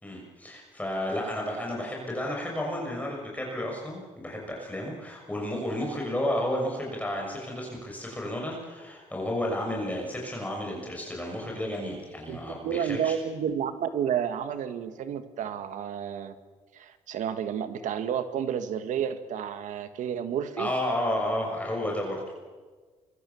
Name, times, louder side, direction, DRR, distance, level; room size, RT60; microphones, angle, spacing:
voice 1, 0.0-13.1 20.6-22.2, left 1 dB, 10° left, -2 dB, 6.5 m, -32 dB
voice 2, 12.3-16.4 16.7-20.7, right 8 dB, 80° right, 10 dB, 1.8 m, -31 dB
25.0 x 23.0 x 7.1 m, 1.4 s
cardioid pair, 80°, 13 cm